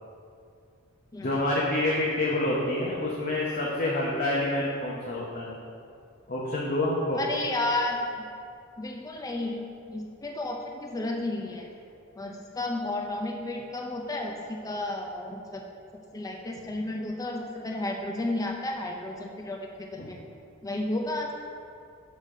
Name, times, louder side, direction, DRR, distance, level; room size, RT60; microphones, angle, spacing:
voice 1, 1.2-5.6 6.3-7.2 20.0-20.1, left 1 dB, 45° left, -5 dB, 0.8 m, -27 dB
voice 2, 7.1-8.0 8.8-11.7 12.2-15.6 16.1-20.2 20.6-21.3, left 2 dB, 15° left, 1 dB, 0.5 m, -32 dB
6.5 x 4.1 x 6.0 m, 2.4 s
head